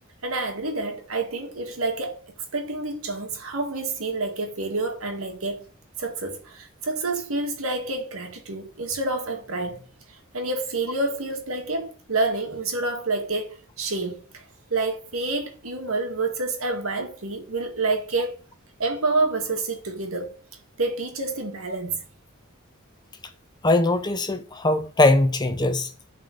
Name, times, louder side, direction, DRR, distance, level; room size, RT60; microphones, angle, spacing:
voice 1, 0.2-2.2 2.5-5.7 6.0-9.8 10.3-14.4 14.7-18.3 18.8-20.3 20.8-22.0, right 3 dB, 75° right, 2.0 m, -28 dB
voice 2, 23.6-25.9, left 2 dB, 20° left, 0.6 m, -21 dB
8.1 x 4.3 x 6.6 m
head